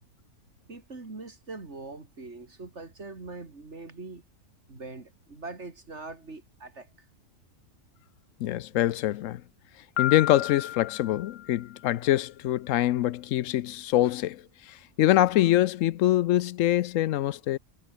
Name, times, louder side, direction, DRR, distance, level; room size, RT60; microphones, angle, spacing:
voice 1, 0.7-4.2 4.7-6.9, right 3 dB, 65° right, 3.5 m, -42 dB
voice 2, 8.4-9.4 10.0-17.6, left 14 dB, 90° left, 1.0 m, -24 dB
Piano, 10.0-11.9, left 11 dB, 60° left, 0.7 m, -33 dB
omnidirectional pair, 1.3 m